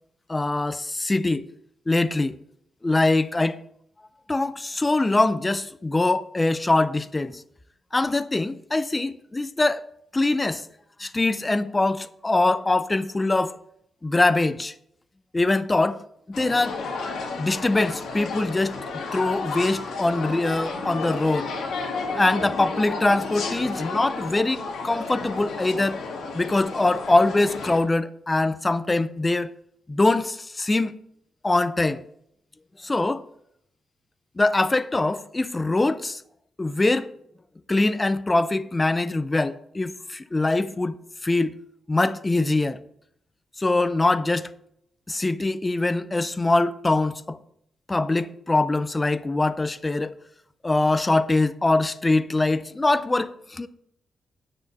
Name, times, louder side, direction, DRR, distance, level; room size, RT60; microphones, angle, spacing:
voice 1, 0.3-1.5 1.9-2.3 2.8-3.6 4.3-7.4 7.9-9.8 10.1-10.6 11.0-13.6 14.0-14.7 15.3-16.0 16.3-16.8 17.4-18.8 19.1-21.5 22.2-26.0 26.3-29.5 29.9-30.9 31.4-32.0 32.8-33.2 34.4-36.2 36.6-37.1 37.7-41.0 41.2-41.5 41.9-42.8 43.6-44.5 45.1-47.4 47.9-50.1 50.6-53.7, left 2 dB, 15° left, 0.4 m, -23 dB
sound 1, 16.3-27.8, left 3 dB, 70° left, 2.7 m, -32 dB
9.4 x 6.7 x 5.2 m
wide cardioid pair, 145°, 0 cm